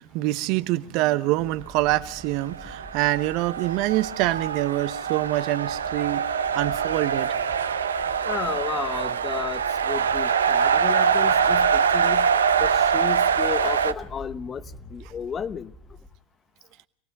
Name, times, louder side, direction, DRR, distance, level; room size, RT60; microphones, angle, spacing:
voice 1, 0.0-6.2 6.5-7.3, right 16 dB, 55° right, 0.9 m, -25 dB
sound 1, 1.3-16.1, left 1 dB, 10° left, 2.2 m, -46 dB
sound 2, 2.4-13.9, right 7 dB, 85° right, 0.8 m, -24 dB
voice 2, 8.2-12.3 12.6-14.6 14.9-15.7, left 7 dB, 30° left, 0.8 m, -33 dB
26.5 x 18.0 x 5.3 m
hypercardioid pair, 80°, 0 cm